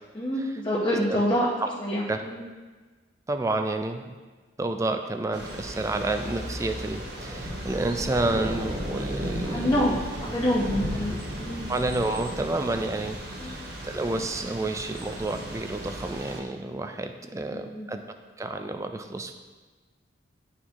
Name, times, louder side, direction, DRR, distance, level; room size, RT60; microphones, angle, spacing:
voice 1, 0.1-1.5 1.8-2.4 9.5-11.6 13.4-13.6 17.5-17.9, equal, 25° left, -7 dB, 0.8 m, -27 dB
voice 2, 3.3-4.1 4.6-9.8 11.7-13.2 13.8-18.0 18.4-19.3, right 2 dB, 15° right, 7 dB, 0.3 m, -29 dB
Thunder / Rain, 5.3-16.4, equal, 55° right, 1.3 m, -35 dB
11.0 x 4.2 x 2.9 m, 1.3 s
head